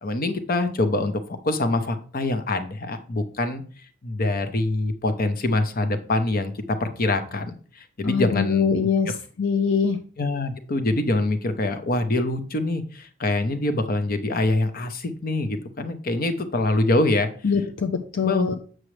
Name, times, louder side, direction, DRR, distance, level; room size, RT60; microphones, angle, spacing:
voice 1, 0.0-3.6 4.0-8.7 10.2-17.3 18.2-18.5, left 2 dB, 50° left, 9 dB, 0.9 m, -25 dB
voice 2, 8.0-9.1 9.4-10.0 17.4-18.6, left 5 dB, 70° left, 7 dB, 0.6 m, -23 dB
7.4 x 6.3 x 3.2 m, 0.42 s
head